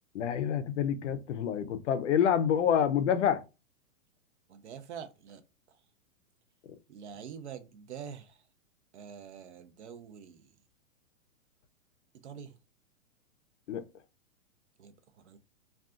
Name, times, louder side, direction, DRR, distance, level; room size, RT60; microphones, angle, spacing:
voice 1, 0.1-3.4 13.7-13.8, left 8 dB, 55° left, 0.5 m, -27 dB
voice 2, 4.5-5.4 6.9-8.4 8.9-10.5 12.2-12.5 14.8-15.4, right 7 dB, 55° right, 0.5 m, -45 dB
2.4 x 2.3 x 3.6 m
hypercardioid pair, 175°, 43 cm